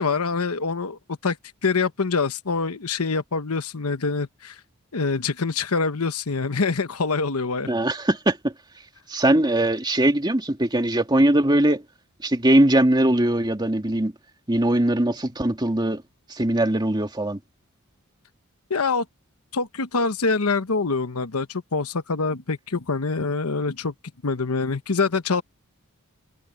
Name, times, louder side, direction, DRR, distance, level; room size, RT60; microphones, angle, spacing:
voice 1, 0.0-1.4 1.6-4.6 4.9-7.7 18.7-19.0 19.5-23.9 24.2-25.4, left 4 dB, 80° left, 1.1 m, -25 dB
voice 2, 7.7-8.5 9.1-11.8 12.2-14.1 14.5-16.0 16.3-17.4, right 1 dB, 20° right, 2.3 m, -21 dB
head